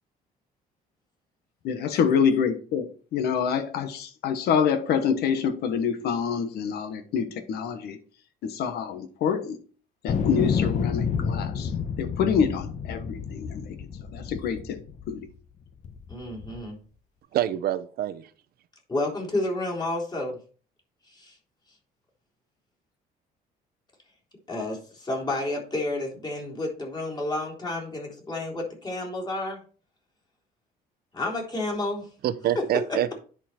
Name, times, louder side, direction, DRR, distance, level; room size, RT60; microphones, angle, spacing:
voice 1, 1.6-2.9 3.1-8.0 8.4-9.6 10.0-11.7 12.0-13.8 14.1-14.8 15.1-15.2, left 7 dB, 70° left, 8 dB, 1.2 m, -26 dB
sound 1, 10.1-15.3 15.8-16.6, left 6 dB, 45° left, 1.1 m, -29 dB
voice 2, 16.1-16.8 18.9-20.4 21.1-21.3 24.5-29.6 31.1-32.1 32.5-32.6 32.9-33.0, left 2 dB, 25° left, -1 dB, 3.6 m, -30 dB
voice 3, 17.3-18.3 32.2-33.2, right 11 dB, 65° right, 11 dB, 0.8 m, -26 dB
10.0 x 4.7 x 4.4 m, 0.40 s
cardioid pair, 110°, 17 cm